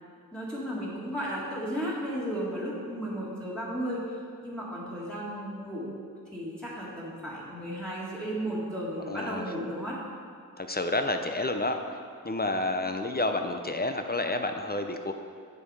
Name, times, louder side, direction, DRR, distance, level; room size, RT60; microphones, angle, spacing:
voice 1, 0.3-4.0 4.4-6.0 6.3-10.0, equal, 5° left, -7 dB, 1.8 m, -34 dB
voice 2, 9.1-9.4 10.6-11.8 12.2-15.1, left 2 dB, 25° left, 6 dB, 0.5 m, -29 dB
7.7 x 6.8 x 4.7 m, 2.3 s
wide cardioid pair, 85°, 36 cm